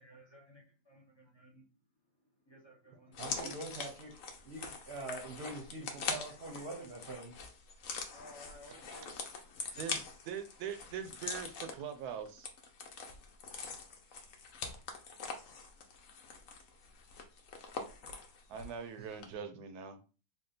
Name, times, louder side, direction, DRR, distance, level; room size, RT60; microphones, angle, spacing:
voice 1, 0.0-1.7 2.0-3.2 8.1-9.6, equal, 25° left, 0.5 m, -58 dB
sound 1, 3.1-18.8 19.1-19.2, left 4 dB, 60° left, 1.0 m, -43 dB
voice 2, 3.2-4.2 4.4-7.4 19.0-19.4, right 2 dB, 50° right, 0.9 m, -44 dB
voice 3, 9.7-12.5 18.5-20.0, right 7 dB, 75° right, 1.1 m, -42 dB
3.6 x 2.3 x 3.9 m
omnidirectional pair, 1.7 m